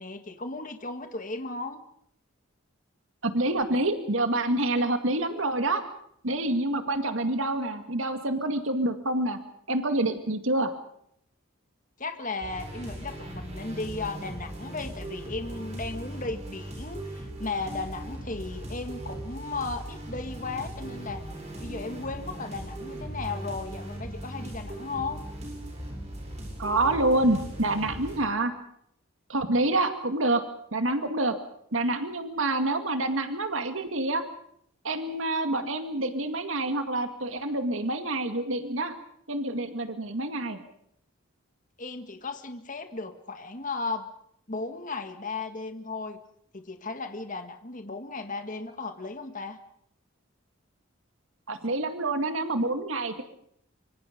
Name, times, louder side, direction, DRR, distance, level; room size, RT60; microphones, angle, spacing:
voice 1, 0.0-1.8 12.0-21.3 21.6-25.2 41.8-44.1 44.5-46.2 46.5-49.6, left 3 dB, 40° left, 7 dB, 1.8 m, -35 dB
voice 2, 3.2-5.8 6.2-9.4 9.7-10.7 26.6-28.5 29.3-30.4 30.7-31.4 31.7-34.2 34.8-38.9 39.3-40.6 51.5-53.2, right 2 dB, 75° right, 7 dB, 2.1 m, -27 dB
sound 1, 12.4-28.2, right 1 dB, 35° right, 8.0 m, -39 dB
25.0 x 25.0 x 5.3 m, 0.70 s
head